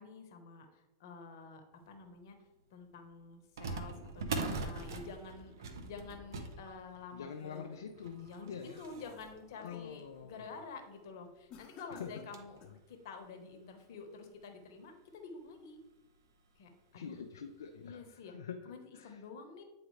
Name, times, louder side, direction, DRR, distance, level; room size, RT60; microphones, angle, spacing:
voice 1, 0.0-1.6 1.9-2.4 2.7-7.6 8.2-12.6 12.9-15.8 16.6-17.1 17.8-18.4 18.6-19.6, left 4 dB, 65° left, 5 dB, 1.1 m, -49 dB
sound 1, 2.1-2.2 3.6-10.5 11.1-11.2 11.4-11.5 11.9-12.6 13.2-13.3 14.1-14.2 14.6-14.7 16.1-16.3 16.7-16.8 17.4-17.6, right 3 dB, 75° right, 0.8 m, -43 dB
sound 2, 6.9-8.1 8.6-9.9 10.3-10.6 11.5-12.9, left 4 dB, 40° left, 1.0 m, -57 dB
voice 2, 7.1-8.8 9.6-10.5 11.9-12.3 16.9-19.2, left 7 dB, 85° left, 5 dB, 0.5 m, -46 dB
9.0 x 3.8 x 3.2 m, 1.0 s
hypercardioid pair, 105°, 2 cm